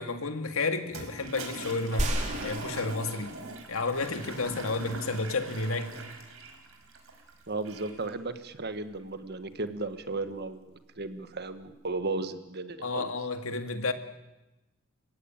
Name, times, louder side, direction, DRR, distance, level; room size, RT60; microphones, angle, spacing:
voice 1, 0.0-2.1 2.4-3.4 3.7-5.9 12.8-13.9, left 3 dB, 75° left, 2.0 m, -31 dB
Toilet flush, 0.8-8.1, right 2 dB, 75° right, 4.8 m, -42 dB
sound 1, 2.0-3.7 4.3-4.4, right 1 dB, 35° right, 3.6 m, -33 dB
voice 2, 7.5-10.7 11.0-13.0, right 3 dB, 50° right, 1.7 m, -35 dB
29.0 x 16.5 x 9.0 m
head